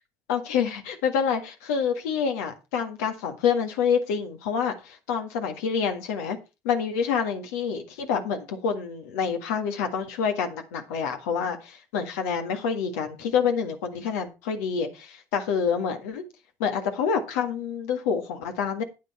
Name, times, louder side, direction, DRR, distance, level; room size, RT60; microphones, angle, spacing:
voice 1, 0.3-6.4 6.6-16.2 16.6-18.8, left 6 dB, 85° left, 6 dB, 1.7 m, -27 dB
9.4 x 9.2 x 4.3 m, 0.28 s
hypercardioid pair, 65°, 8 cm